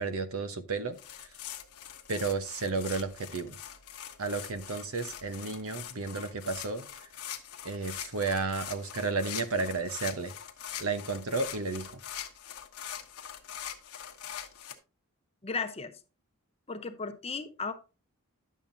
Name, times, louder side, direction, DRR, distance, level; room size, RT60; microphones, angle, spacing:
voice 1, 0.0-1.3 2.1-3.6 4.2-7.1 7.6-10.3 10.8-12.0, right 3 dB, 70° right, 1.0 m, -33 dB
sound 1, 1.0-14.7, left 10 dB, 80° left, 1.1 m, -43 dB
voice 2, 15.4-15.9 16.7-17.7, left 4 dB, 25° left, 0.8 m, -35 dB
10.5 x 7.3 x 2.7 m
head